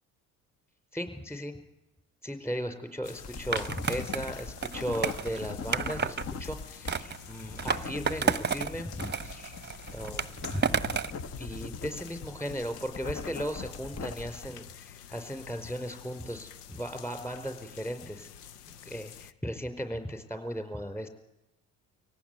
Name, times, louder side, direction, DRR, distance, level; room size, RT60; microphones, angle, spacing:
voice 1, 0.9-1.5 2.2-9.6 9.9-10.8 11.4-18.3 18.7-21.1, equal, 5° left, 8 dB, 5.2 m, -37 dB
sound 1, 3.0-19.3, left 9 dB, 90° left, 1.0 m, -49 dB
sound 2, 3.2-14.5, left 4 dB, 35° left, 1.4 m, -41 dB
Skateboard, 3.5-6.2 6.9-8.7 9.0-11.2, right 6 dB, 25° right, 1.1 m, -31 dB
25.0 x 17.5 x 9.7 m, 0.95 s
hypercardioid pair, 60°, 45 cm